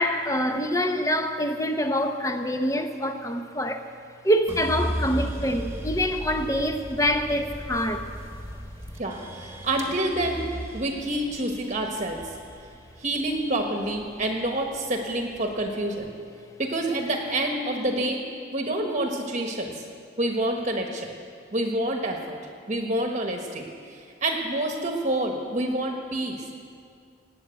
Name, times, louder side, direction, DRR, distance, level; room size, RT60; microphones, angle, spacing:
voice 1, 0.0-3.9 4.2-8.1, equal, 15° left, 0.8 m, -25 dB
sound 1, 4.5-14.7 15.1-15.9, right 1 dB, 15° right, 1.4 m, -36 dB
voice 2, 9.0-12.3 13.0-16.1 16.6-18.2 18.5-19.7 20.2-21.1 21.5-22.4 22.7-26.5, right 1 dB, 35° right, 1.2 m, -28 dB
19.0 x 8.7 x 8.1 m
head